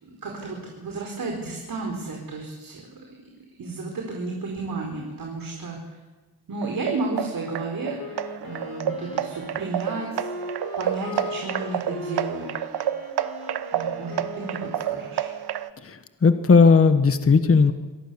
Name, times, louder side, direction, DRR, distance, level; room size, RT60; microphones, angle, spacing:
voice 1, 0.0-2.9 3.6-5.8 6.5-10.3 10.8-12.5 13.7-15.3, right 3 dB, 55° right, 1 dB, 4.6 m, -32 dB
sound 1, 6.6-15.7, right 10 dB, 70° right, 1.1 m, -30 dB
Wind instrument woodwind instrument, 7.9-15.7, left 4 dB, 60° left, 3.8 m, -39 dB
voice 2, 15.8-17.7, left 4 dB, 35° left, 9 dB, 1.4 m, -17 dB
25.5 x 18.0 x 7.0 m, 1.3 s
cardioid pair, 90°, 40 cm